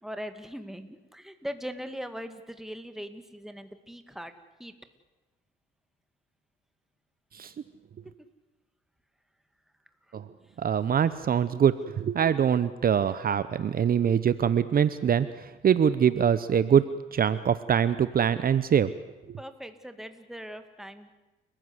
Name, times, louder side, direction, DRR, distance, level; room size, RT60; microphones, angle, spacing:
voice 1, 0.0-4.3 4.6-4.7 10.1-10.2 19.4-21.1, equal, ahead, 8 dB, 2.1 m, -40 dB
voice 2, 10.6-18.9 19.3-19.4, right 8 dB, 45° right, 14 dB, 0.8 m, -24 dB
30.0 x 15.0 x 8.0 m, 1.1 s
cardioid pair, 90°, 20 cm